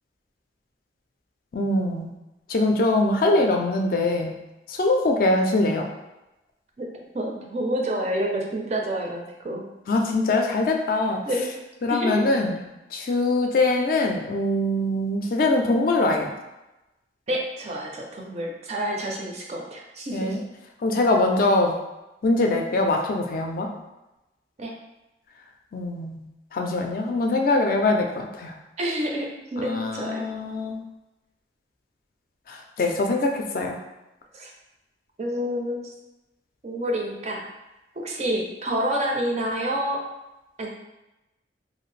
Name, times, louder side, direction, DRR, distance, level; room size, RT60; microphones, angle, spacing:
voice 1, 1.5-2.1 2.5-4.4 4.8-5.8 9.9-11.2 11.8-12.6 12.9-16.3 20.1-20.4 20.8-21.8 22.2-23.7 25.7-26.2 26.5-28.5 29.6-30.8 32.5-33.8, left 2 dB, 50° left, 2 dB, 0.3 m, -23 dB
voice 2, 7.1-9.6 11.2-11.5 11.9-12.2 17.3-20.4 24.6-24.7 28.8-30.3 34.3-34.5 35.2-35.9 36.6-37.4 38.0-40.0 40.6-40.7, right 1 dB, 35° right, 0 dB, 0.4 m, -28 dB
2.6 x 2.4 x 3.1 m, 0.99 s
head